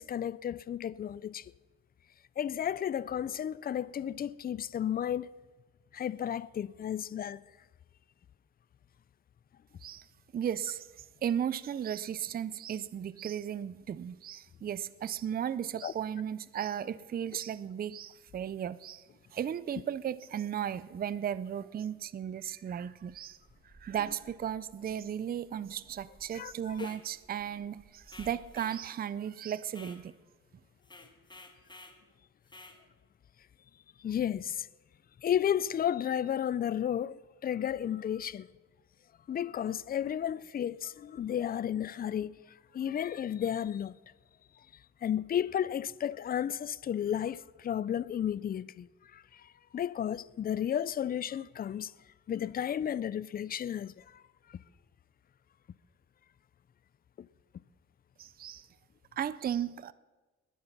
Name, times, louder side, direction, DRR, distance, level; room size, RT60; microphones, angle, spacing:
voice 1, 0.0-1.5 2.4-5.3 5.9-7.4 15.8-15.9 26.3-26.9 34.0-34.7 35.2-38.5 39.3-42.3 42.7-44.0 45.0-51.9 52.3-54.2 54.5-54.6, left 9 dB, 30° left, 0.4 m, -33 dB
voice 2, 10.3-19.0 19.3-23.4 23.6-30.1 58.2-58.7 59.1-59.9, right 9 dB, 30° right, 0.4 m, -35 dB
sound 1, 23.0-28.5, right 2 dB, 15° right, 1.2 m, -61 dB
sound 2, 26.7-27.0 28.1-28.8 29.7-30.0 30.8-32.0 32.5-32.8, left 2 dB, 15° left, 1.6 m, -51 dB
20.5 x 9.4 x 5.9 m
cardioid pair, 125°, 31 cm